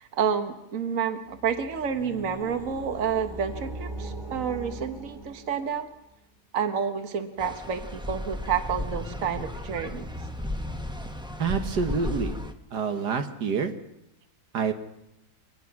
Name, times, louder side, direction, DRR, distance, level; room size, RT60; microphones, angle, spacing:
voice 1, 0.0-5.9 6.5-10.1, right 7 dB, 55° right, 8 dB, 1.6 m, -29 dB
sound 1, 1.3-6.0, right 2 dB, 35° right, 3.8 m, -40 dB
sound 2, 7.4-12.5, left 1 dB, 5° right, 0.8 m, -34 dB
voice 2, 11.4-12.4 12.7-13.7 14.5-14.7, right 5 dB, 80° right, 7 dB, 2.0 m, -27 dB
24.0 x 19.0 x 6.0 m, 0.84 s
omnidirectional pair, 1.8 m